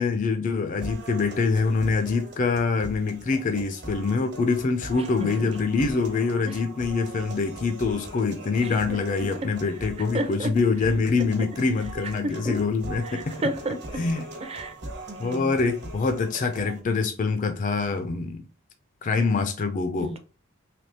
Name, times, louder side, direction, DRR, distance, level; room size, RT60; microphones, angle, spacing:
voice 1, 0.0-13.2 14.0-14.2 15.2-18.4 19.0-20.1, left 4 dB, 40° left, 0.4 m, -25 dB
sound 1, 0.8-16.8, right 1 dB, 55° right, 1.2 m, -41 dB
voice 2, 10.1-10.5 11.4-11.5 12.2-12.6 13.0-13.8 14.4-14.8 15.1-15.6 20.0-20.2, right 1 dB, 30° right, 0.6 m, -31 dB
3.4 x 2.8 x 2.7 m
head